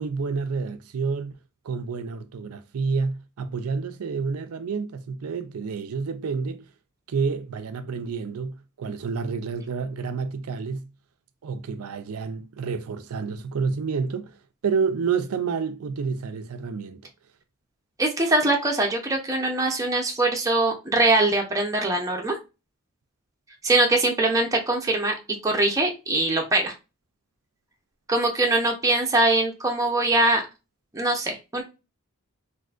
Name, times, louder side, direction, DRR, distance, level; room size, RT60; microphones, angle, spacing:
voice 1, 0.0-1.3 1.6-6.7 7.1-10.9 11.4-14.4 14.6-17.0, right 5 dB, 85° right, 0.4 m, -29 dB
voice 2, 18.0-22.4 23.6-25.1 25.4-26.7 28.1-30.4 30.9-31.6, right 2 dB, 15° right, 0.6 m, -22 dB
3.6 x 2.5 x 2.4 m
head